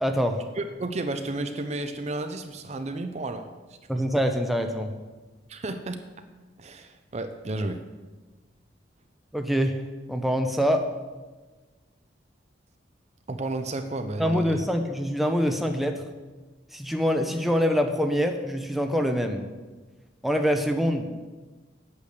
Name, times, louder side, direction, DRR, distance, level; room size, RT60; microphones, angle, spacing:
voice 1, 0.0-0.4 3.9-4.9 9.3-9.7 10.1-10.8 14.2-16.0 16.7-19.4 20.2-21.1, equal, ahead, 4 dB, 0.7 m, -25 dB
voice 2, 0.6-3.5 3.9-4.0 5.5-6.0 6.6-7.8 13.3-14.6, right 2 dB, 35° right, 7 dB, 0.6 m, -32 dB
8.5 x 8.2 x 6.6 m, 1.3 s
head